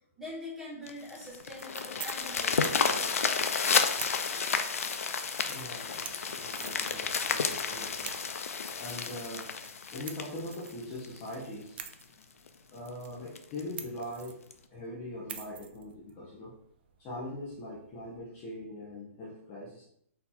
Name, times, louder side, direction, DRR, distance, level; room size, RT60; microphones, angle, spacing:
voice 1, 0.2-3.7, left 1 dB, 5° right, -6 dB, 1.1 m, -44 dB
sound 1, 0.9-11.3 11.9-12.0 12.5-12.6 12.9-13.0 13.4-13.6 14.5-14.6, left 5 dB, 85° left, 0.5 m, -31 dB
sound 2, 1.3-18.2, right 8 dB, 45° right, 0.5 m, -49 dB
voice 2, 5.4-8.2 8.8-9.5 9.8-11.8 12.7-14.4 14.7-16.6 17.0-19.9, left 1 dB, 20° left, -5 dB, 0.7 m, -42 dB
4.2 x 2.7 x 4.2 m, 0.69 s
hypercardioid pair, 165°, 8 cm